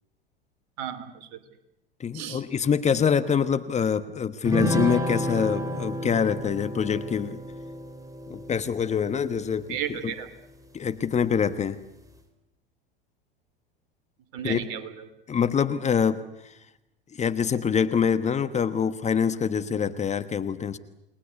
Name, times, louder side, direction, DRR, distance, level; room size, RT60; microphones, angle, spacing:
voice 1, 0.8-1.4 2.1-2.4 9.7-10.3 14.3-15.1, right 9 dB, 55° right, 12 dB, 3.1 m, -34 dB
voice 2, 2.0-7.4 8.3-10.0 10.7-11.8 14.4-14.6 15.3-16.5 17.2-20.8, left 7 dB, 25° left, 11 dB, 1.2 m, -25 dB
sound 1, 4.4-10.1, equal, 10° right, 3.9 m, -31 dB
29.0 x 20.0 x 8.2 m, 0.87 s
hypercardioid pair, 85°, 29 cm